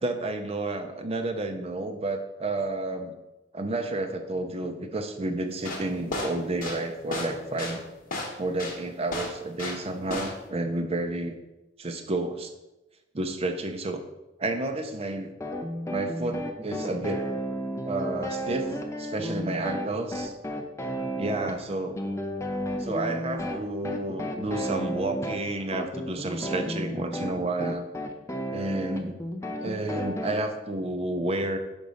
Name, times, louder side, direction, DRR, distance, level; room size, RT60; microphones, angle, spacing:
voice 1, 0.0-3.2 3.5-7.8 8.4-11.3 11.8-12.5 13.1-14.0 14.4-15.3 15.9-17.3 17.9-18.7 19.0-20.3 21.2-22.0 22.8-27.8 28.5-29.2 29.6-31.6, right 2 dB, 30° right, 5 dB, 0.6 m, -30 dB
sound 1, 5.5-9.8 10.1-10.5, left 2 dB, 45° left, 1.2 m, -33 dB
sound 2, 15.4-30.4, equal, 15° left, 0.5 m, -33 dB
5.4 x 4.0 x 4.9 m, 0.97 s
head